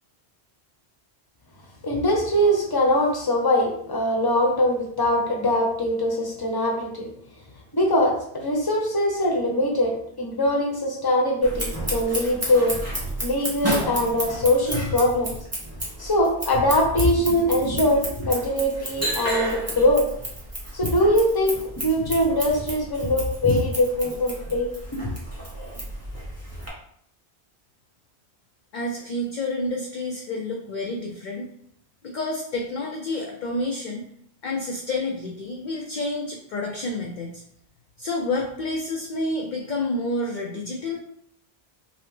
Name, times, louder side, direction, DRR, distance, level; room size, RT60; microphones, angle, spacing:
voice 1, 1.8-7.1 7.7-12.7 13.2-15.4 16.0-20.1 20.7-25.1, left 1 dB, 25° left, 0 dB, 0.8 m, -22 dB
Scissors, 11.4-26.7, right 1 dB, 15° right, 1.0 m, -32 dB
voice 2, 28.7-31.5 32.0-34.0 34.4-37.4 38.0-41.0, left 2 dB, 55° left, 1 dB, 0.6 m, -29 dB
5.5 x 2.1 x 3.1 m, 0.68 s
omnidirectional pair, 1.1 m